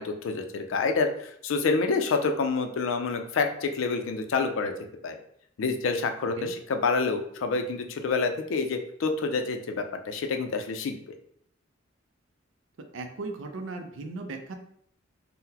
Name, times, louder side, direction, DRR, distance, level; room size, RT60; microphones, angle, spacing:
voice 1, 0.0-4.7 5.0-5.2 5.6-11.0, left 4 dB, 80° left, 6 dB, 0.4 m, -28 dB
voice 2, 12.8-14.5, right 3 dB, 75° right, 5 dB, 0.5 m, -37 dB
3.8 x 2.1 x 2.7 m, 0.70 s
head